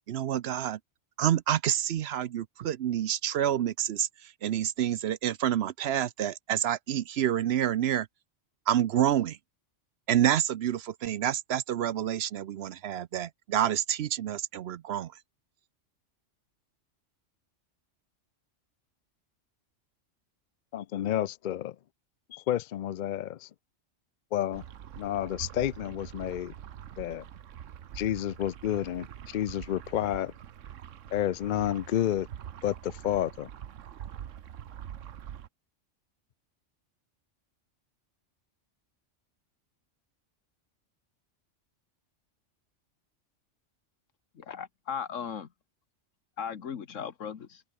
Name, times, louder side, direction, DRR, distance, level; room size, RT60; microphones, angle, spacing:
voice 1, 0.1-0.8 1.2-8.1 8.7-9.4 10.1-15.1, right 10 dB, 65° right, 0.8 m, -28 dB
voice 2, 20.7-21.8 22.3-23.5 24.3-24.6 25.0-26.5 27.0-27.2 27.9-30.3 31.1-32.3 32.6-33.5, left 11 dB, 65° left, 0.5 m, -30 dB
sound 1, 24.5-35.5, right 10 dB, 85° right, 1.2 m, -44 dB
voice 3, 44.3-45.5 46.4-47.6, left 7 dB, 85° left, 1.6 m, -37 dB
omnidirectional pair, 1.3 m